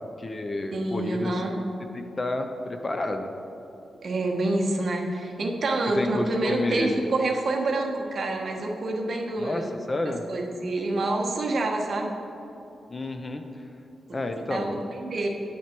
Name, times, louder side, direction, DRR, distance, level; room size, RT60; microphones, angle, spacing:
voice 1, 0.2-1.4 1.9-3.3 6.0-7.1 9.4-10.2 12.9-13.4 14.1-14.8, left 2 dB, 25° left, 6 dB, 0.5 m, -30 dB
voice 2, 0.7-1.5 4.0-9.8 10.3-12.1 14.5-14.8 15.0-15.3, right 2 dB, 45° right, 0 dB, 1.2 m, -27 dB
9.1 x 8.8 x 4.4 m, 2.9 s
wide cardioid pair, 160°, 0 cm